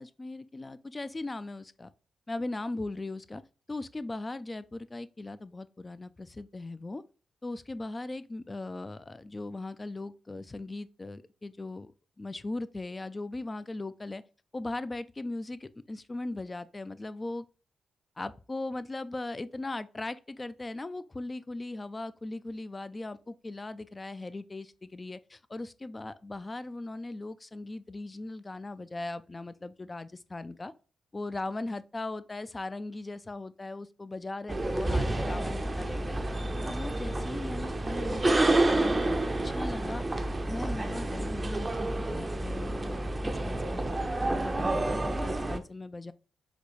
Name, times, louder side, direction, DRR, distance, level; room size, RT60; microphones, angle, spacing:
voice 1, 0.0-1.9 2.3-3.4 3.7-7.0 7.4-11.9 12.2-14.2 14.5-17.5 18.2-30.7 31.1-36.2 36.7-39.0 39.4-40.0 40.5-43.0 43.2-46.1, left 2 dB, 30° left, 0.3 m, -39 dB
sound 1, 34.5-45.6, right 2 dB, 30° right, 0.5 m, -29 dB
4.0 x 2.3 x 3.0 m
supercardioid pair, 45°, 0 cm